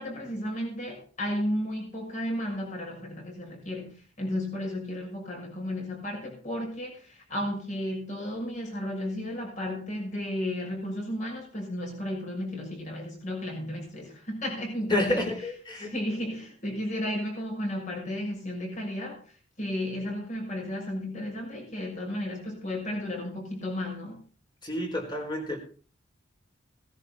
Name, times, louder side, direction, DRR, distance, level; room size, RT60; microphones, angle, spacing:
voice 1, 0.0-15.2 15.8-19.2 19.6-24.2, left 1 dB, 40° left, 0 dB, 6.4 m, -33 dB
voice 2, 14.9-16.0 24.6-25.6, left 1 dB, 25° left, 2 dB, 4.2 m, -29 dB
18.5 x 10.5 x 4.2 m, 0.39 s
head